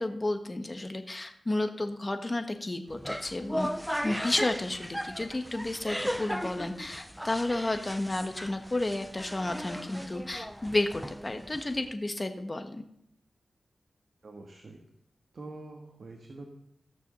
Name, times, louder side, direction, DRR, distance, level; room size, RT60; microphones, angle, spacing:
voice 1, 0.0-3.7 4.0-12.8, left 2 dB, 30° left, 7 dB, 1.3 m, -32 dB
sound 1, 2.9-11.9, equal, ahead, 0.4 m, -37 dB
voice 2, 14.2-14.8 15.3-16.5, right 2 dB, 60° right, 3 dB, 1.6 m, -45 dB
15.0 x 6.4 x 6.7 m, 0.77 s
cardioid pair, 65°, 0 cm